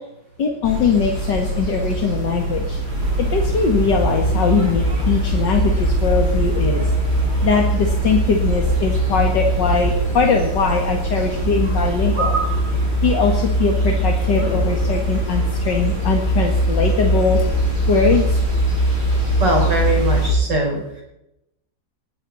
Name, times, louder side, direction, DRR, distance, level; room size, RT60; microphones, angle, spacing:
voice 1, 0.4-2.8 3.3-6.8 7.4-12.4 13.0-17.4 17.9-18.2, left 5 dB, 70° left, 2 dB, 2.5 m, -21 dB
sound 1, 0.6-20.3, right 1 dB, 35° right, 7.0 m, -21 dB
voice 2, 19.4-21.0, right 1 dB, 70° right, -1 dB, 5.6 m, -21 dB
20.5 x 15.5 x 4.2 m, 0.83 s
omnidirectional pair, 2.0 m